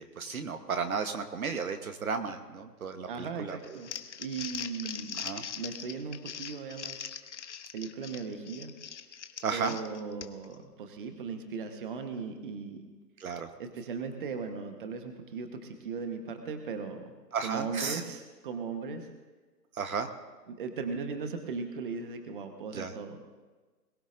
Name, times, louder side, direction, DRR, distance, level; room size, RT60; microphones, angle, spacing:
voice 1, 0.0-3.8 5.2-5.4 9.4-9.7 13.2-13.5 17.3-18.0 19.7-20.1 22.7-22.9, right 5 dB, 60° right, 8 dB, 1.2 m, -34 dB
voice 2, 3.1-3.9 4.2-5.2 5.6-7.1 7.7-8.7 9.5-12.8 13.6-17.1 17.4-19.1 20.5-23.2, right 5 dB, 30° right, 6 dB, 1.2 m, -38 dB
Crumpling crinkling, 3.6-10.5, left 8 dB, 45° left, 0.8 m, -41 dB
22.0 x 16.0 x 2.6 m, 1.3 s
hypercardioid pair, 150°, 49 cm